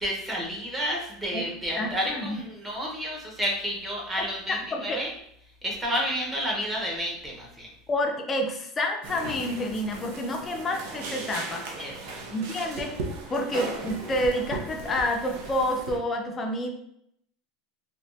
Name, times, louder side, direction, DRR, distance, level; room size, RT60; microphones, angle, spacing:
voice 1, 0.0-5.1 5.6-7.7 11.8-12.2, equal, 15° right, -2 dB, 1.0 m, -30 dB
voice 2, 1.8-2.4 4.7-5.0 7.9-11.7 12.3-12.9 13.3-16.7, left 1 dB, 20° left, 3 dB, 0.5 m, -28 dB
sound 1, 9.0-16.0, right 3 dB, 75° right, 0.7 m, -37 dB
3.4 x 2.8 x 2.7 m, 0.72 s
supercardioid pair, 145°, 0 cm